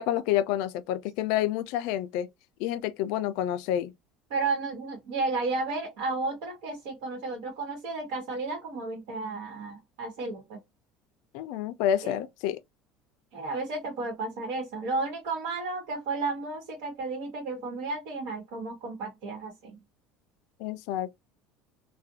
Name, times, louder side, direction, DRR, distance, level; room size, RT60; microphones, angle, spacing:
voice 1, 0.0-2.3 2.6-3.9 11.3-12.6 20.6-21.1, left 11 dB, 70° left, 0.3 m, -28 dB
voice 2, 4.3-10.6 12.0-12.2 13.3-19.8, right 3 dB, 70° right, 1.1 m, -33 dB
2.4 x 2.1 x 2.6 m
cardioid pair, 140°, 0 cm